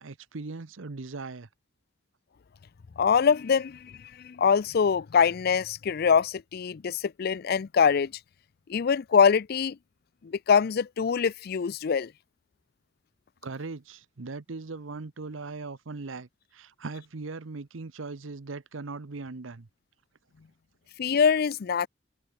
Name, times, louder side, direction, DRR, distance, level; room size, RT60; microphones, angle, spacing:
voice 1, 0.0-1.5 13.4-19.7, right 3 dB, 85° right, 0.9 m, -39 dB
voice 2, 3.0-3.9 4.2-8.1 8.7-9.8 10.2-12.1 21.0-21.9, left 6 dB, 50° left, 0.4 m, -24 dB
head